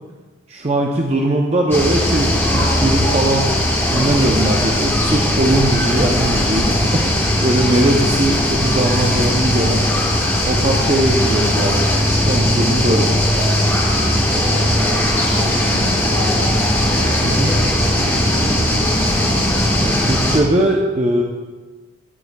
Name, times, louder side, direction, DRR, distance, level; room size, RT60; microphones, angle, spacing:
voice 1, 0.5-3.5 3.9-9.9 10.5-11.9 12.2-13.1 17.2-17.5 19.8-21.2, right 1 dB, 35° right, 0 dB, 0.6 m, -19 dB
sound 1, 1.7-20.4, left 1 dB, 10° left, 1.4 m, -18 dB
voice 2, 14.3-19.0, right 1 dB, 65° right, -3 dB, 2.6 m, -30 dB
13.5 x 9.5 x 2.3 m, 1.3 s
head